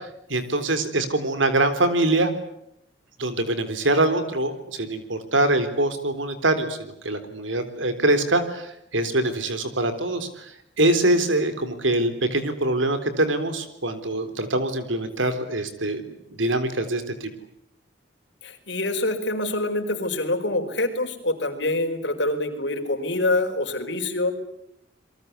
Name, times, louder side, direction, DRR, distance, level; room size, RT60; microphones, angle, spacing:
voice 1, 0.3-2.3 3.2-10.5 10.8-17.3, right 2 dB, 90° right, 10 dB, 3.8 m, -24 dB
voice 2, 18.4-24.3, left 2 dB, 70° left, 5 dB, 4.9 m, -25 dB
28.5 x 23.0 x 8.3 m, 0.80 s
head